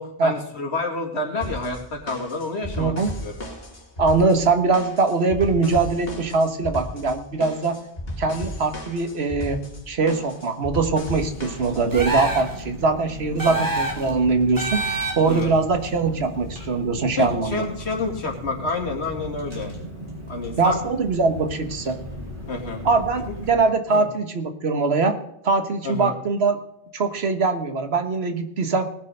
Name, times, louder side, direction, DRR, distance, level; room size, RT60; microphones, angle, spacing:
voice 1, 0.0-2.9 3.2-3.3 13.3-13.6 15.3-15.5 17.2-19.7 20.3-20.8 22.5-22.8 23.5-23.6 23.9-24.0 25.8-26.1, left 3 dB, 85° left, 2 dB, 2.5 m, -29 dB
sound 1, 1.4-12.1, left 1 dB, 65° left, 2.7 m, -35 dB
voice 2, 2.8-3.1 4.0-7.8 8.2-9.6 9.9-14.8 15.2-17.6 20.6-22.0 22.8-25.2 25.4-26.6 26.9-28.9, right 4 dB, 75° right, 7 dB, 1.5 m, -22 dB
Car, 10.9-23.5, equal, 50° right, 4.1 m, -37 dB
sound 2, 11.9-12.6 13.4-14.1 14.6-15.4, right 2 dB, 20° right, 2.5 m, -26 dB
19.5 x 6.7 x 5.5 m, 0.77 s
omnidirectional pair, 1.1 m